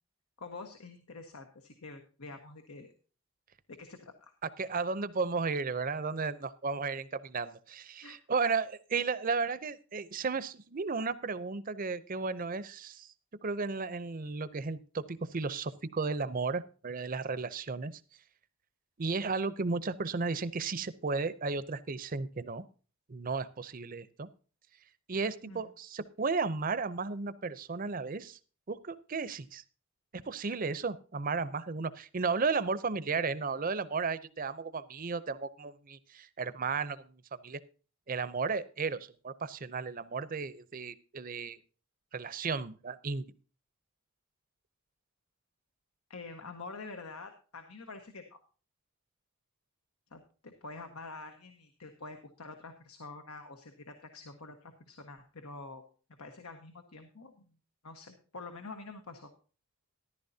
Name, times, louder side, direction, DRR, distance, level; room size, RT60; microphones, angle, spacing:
voice 1, 0.4-2.9 3.7-4.3 8.0-8.2 25.5-25.6 46.1-48.4 50.1-55.8 56.2-57.5 57.8-59.3, left 3 dB, 90° left, 6 dB, 1.3 m, -47 dB
voice 2, 4.6-13.1 13.4-17.9 19.0-22.6 23.1-24.3 25.1-28.4 28.7-29.6 30.3-37.1 37.4-37.6 38.1-41.6 42.1-43.2, right 4 dB, 40° right, 15 dB, 0.6 m, -34 dB
14.0 x 11.5 x 2.8 m, 0.37 s
head